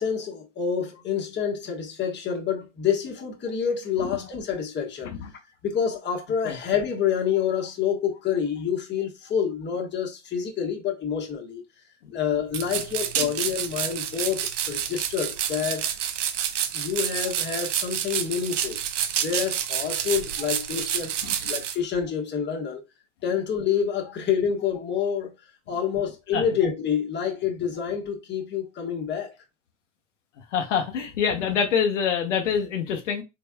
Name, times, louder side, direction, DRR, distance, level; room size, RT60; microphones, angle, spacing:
voice 1, 0.0-5.1 5.6-11.6 12.1-15.9 16.7-18.8 19.2-21.1 21.4-22.8 23.2-25.3 25.7-29.3, left 7 dB, 30° left, 1.3 m, -27 dB
sound 1, 12.5-21.8, right 9 dB, 85° right, 0.6 m, -29 dB
voice 2, 30.5-33.2, left 7 dB, 80° left, 1.0 m, -25 dB
4.0 x 3.5 x 2.3 m
hypercardioid pair, 85°, 36 cm